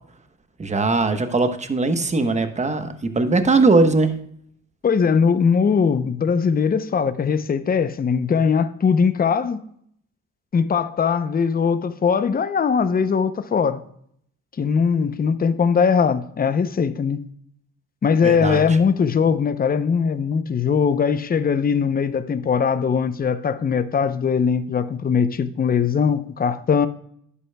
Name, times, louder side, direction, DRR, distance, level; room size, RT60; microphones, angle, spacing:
voice 1, 0.6-4.1 18.2-18.6, right 3 dB, 25° right, 1.0 m, -20 dB
voice 2, 4.8-9.7 10.5-13.8 14.6-17.2 18.0-26.9, left 6 dB, 30° left, 0.7 m, -20 dB
10.5 x 8.4 x 2.3 m
cardioid pair, 90°, 30 cm